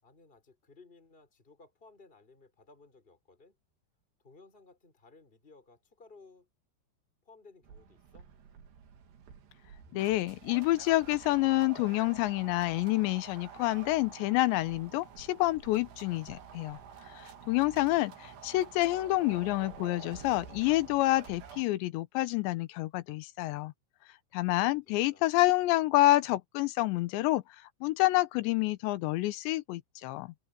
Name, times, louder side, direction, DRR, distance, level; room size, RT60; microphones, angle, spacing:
voice 1, 0.0-3.6 4.2-6.5 7.2-8.3 24.6-25.4, left 3 dB, 10° left, 4.8 m, -58 dB
sound 1, 7.6-21.6, right 7 dB, 75° right, 4.8 m, -49 dB
voice 2, 9.9-16.8 17.2-23.7 24.3-27.4 27.8-30.3, left 18 dB, 85° left, 3.2 m, -28 dB
open air
omnidirectional pair, 5.1 m